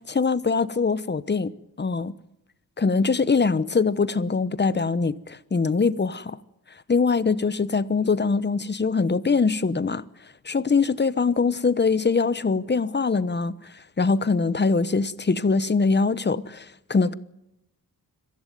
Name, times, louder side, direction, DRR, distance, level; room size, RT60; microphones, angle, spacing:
voice 1, 0.1-2.1 2.8-6.4 6.9-10.0 10.4-13.5 14.0-17.1, left 4 dB, 30° left, 1.0 m, -23 dB
23.5 x 15.0 x 9.3 m
cardioid pair, 80°, 35 cm